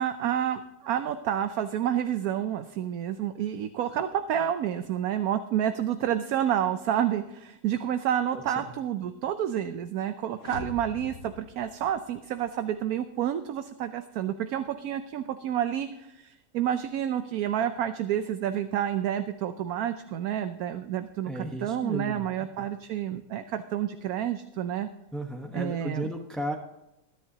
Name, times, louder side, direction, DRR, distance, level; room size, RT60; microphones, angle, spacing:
voice 1, 0.0-24.9 25.5-26.1, right 10 dB, 70° right, 10 dB, 1.1 m, -29 dB
voice 2, 8.3-8.7 21.3-22.2 22.6-22.7 25.1-26.5, equal, ahead, 2 dB, 0.8 m, -34 dB
sound 1, 10.4-12.5, left 4 dB, 55° left, 1.4 m, -43 dB
21.5 x 10.0 x 2.8 m, 0.89 s
omnidirectional pair, 1.7 m